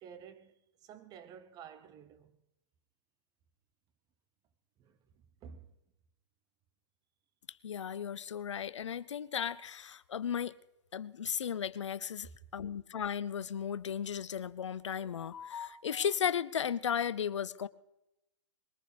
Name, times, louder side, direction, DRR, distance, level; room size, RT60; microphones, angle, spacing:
voice 1, 0.0-2.4 4.8-5.8, right 7 dB, 25° right, 0.9 m, -52 dB
voice 2, 7.6-10.5 10.9-17.7, left 8 dB, 75° left, 0.5 m, -35 dB
22.0 x 18.5 x 3.4 m
hypercardioid pair, 125°, 15 cm